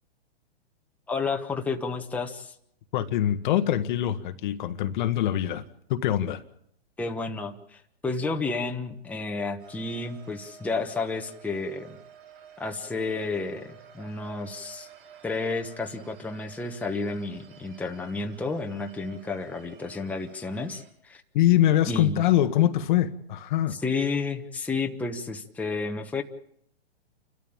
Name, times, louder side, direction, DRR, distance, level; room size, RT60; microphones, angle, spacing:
voice 1, 1.1-2.5 7.0-12.0 12.6-14.9 15.2-21.2 21.9-22.2 23.7-26.2, left 3 dB, 5° left, 1.2 m, -31 dB
voice 2, 2.9-5.6 5.9-6.4 21.3-23.8, left 12 dB, 50° left, 1.3 m, -23 dB
sound 1, 9.6-20.9, right 8 dB, 50° right, 5.4 m, -51 dB
29.5 x 13.0 x 8.8 m
hypercardioid pair, 140°, 32 cm